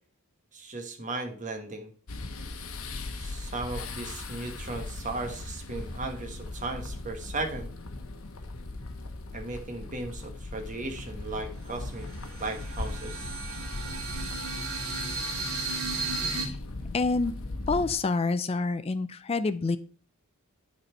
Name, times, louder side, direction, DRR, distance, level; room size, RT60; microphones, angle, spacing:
voice 1, 0.5-1.9 3.1-7.7 9.3-12.0 12.4-13.4, right 2 dB, 35° right, 4 dB, 1.3 m, -36 dB
sound 1, 2.1-18.0, left 2 dB, 70° left, 1.0 m, -39 dB
sound 2, 11.0-11.1 11.5-16.5, right 3 dB, 90° right, 2.1 m, -34 dB
voice 2, 16.9-17.3 17.7-19.8, left 3 dB, 25° left, 11 dB, 0.3 m, -27 dB
9.4 x 4.2 x 4.5 m, 0.44 s
head